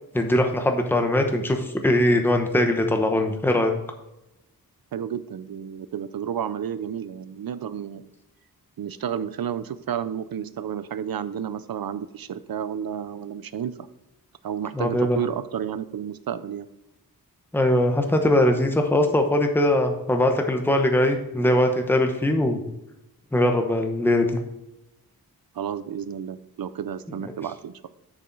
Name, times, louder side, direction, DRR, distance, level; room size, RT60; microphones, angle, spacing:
voice 1, 0.1-3.7 14.7-15.2 17.5-22.6 23.3-24.4, left 1 dB, 5° left, 4 dB, 0.9 m, -21 dB
voice 2, 4.9-8.1 8.8-13.7 14.4-16.7 25.5-27.9, right 8 dB, 70° right, 14 dB, 0.6 m, -31 dB
7.1 x 6.7 x 3.9 m, 0.93 s
wide cardioid pair, 120°, 37 cm